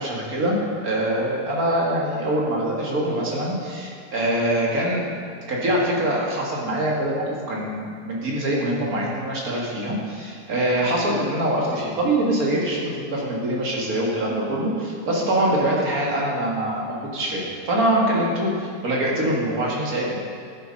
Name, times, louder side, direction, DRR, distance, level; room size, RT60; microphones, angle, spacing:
voice 1, 0.0-5.1 5.5-20.2, right 1 dB, 65° right, -3 dB, 2.3 m, -24 dB
11.5 x 7.0 x 5.3 m, 2.2 s
omnidirectional pair, 1.7 m